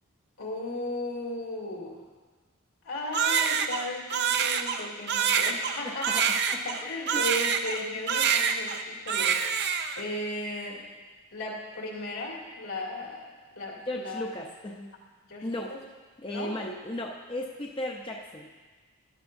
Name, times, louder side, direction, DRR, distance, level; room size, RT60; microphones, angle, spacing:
voice 1, 0.4-2.0 2.8-6.3 6.6-9.7 10.0-10.8 11.3-14.2 15.3-15.5 16.3-16.5, left 1 dB, 80° left, -4 dB, 2.5 m, -36 dB
Crying sobbing, 3.1-7.8 8.1-8.8 9.1-10.0, right 7 dB, 50° right, 0.5 m, -26 dB
voice 2, 5.8-6.2 6.5-7.2 13.9-14.9 15.4-15.7 16.2-18.6, left 1 dB, 25° left, -1 dB, 0.6 m, -36 dB
13.5 x 11.0 x 2.6 m, 1.3 s
head